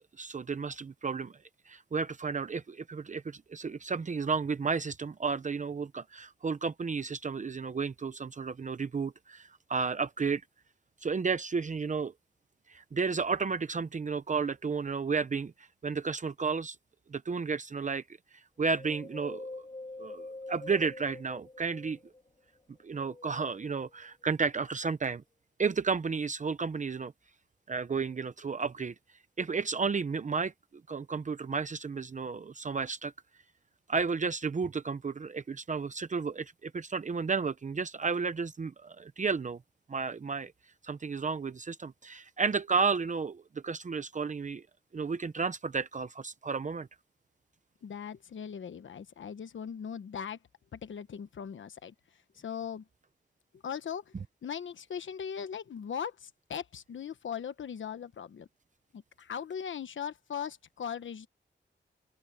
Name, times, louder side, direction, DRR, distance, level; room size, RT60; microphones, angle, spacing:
voice 1, 0.2-1.3 1.7-10.4 11.0-12.1 12.7-16.8 17.1-18.0 18.6-19.5 20.0-22.0 22.8-25.2 25.6-27.1 27.7-28.9 29.4-30.5 30.9-33.1 33.9-39.6 39.9-40.5 40.8-44.6 44.9-46.9, right 5 dB, 40° right, 0.7 m, -32 dB
Wind, 18.7-22.3 22.8-24.0 24.6-24.7, left 2 dB, 25° left, 1.7 m, -45 dB
voice 2, 47.8-50.4 50.7-51.9 52.3-52.8 53.5-54.1 54.4-58.5 58.9-61.3, left 7 dB, 85° left, 1.1 m, -39 dB
open air
wide cardioid pair, 125°, 19 cm